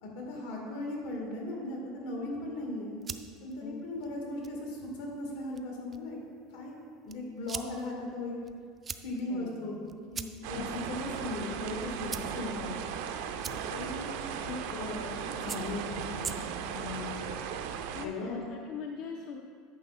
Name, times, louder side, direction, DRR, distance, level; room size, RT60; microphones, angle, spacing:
voice 1, 0.0-2.9 3.4-6.2 6.5-6.7 7.0-8.3 9.0-9.8 10.1-10.6 10.9-12.7 13.4-14.2 14.4-17.3 18.0-18.5, left 2 dB, 80° left, -1 dB, 2.2 m, -38 dB
sound 1, 2.7-16.8, right 6 dB, 20° right, 0.3 m, -46 dB
voice 2, 9.3-9.7 10.5-10.7 17.9-19.4, left 6 dB, 55° left, 3 dB, 0.5 m, -42 dB
sound 2, 10.4-18.1, right 7 dB, 75° right, 0.6 m, -37 dB
9.4 x 6.5 x 4.2 m, 2.2 s
cardioid pair, 150°, 0 cm